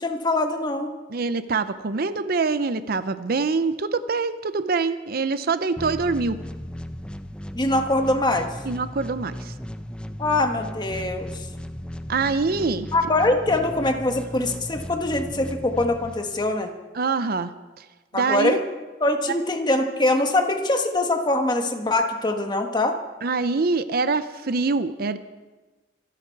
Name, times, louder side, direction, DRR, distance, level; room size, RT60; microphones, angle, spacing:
voice 1, 0.0-0.9 7.5-8.5 10.2-11.5 12.9-16.7 18.1-18.6 19.0-23.0, left 2 dB, 25° left, 5 dB, 1.4 m, -23 dB
voice 2, 1.1-6.4 8.7-9.5 12.1-12.9 17.0-17.5 18.1-18.6 23.2-25.2, right 4 dB, 55° right, 13 dB, 0.6 m, -24 dB
sound 1, 5.8-16.7, equal, 5° left, 0.6 m, -36 dB
25.0 x 11.0 x 4.6 m, 1.2 s
head